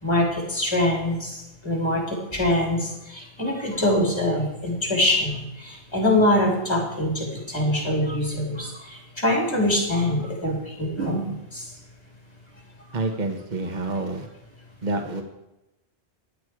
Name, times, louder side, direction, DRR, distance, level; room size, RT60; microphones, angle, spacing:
voice 1, 0.0-11.7 13.7-13.8, left 1 dB, 25° left, 0 dB, 4.0 m, -24 dB
voice 2, 12.9-14.3 14.8-15.2, right 2 dB, 45° right, 5 dB, 1.4 m, -28 dB
15.5 x 10.5 x 4.8 m, 0.93 s
omnidirectional pair, 1.1 m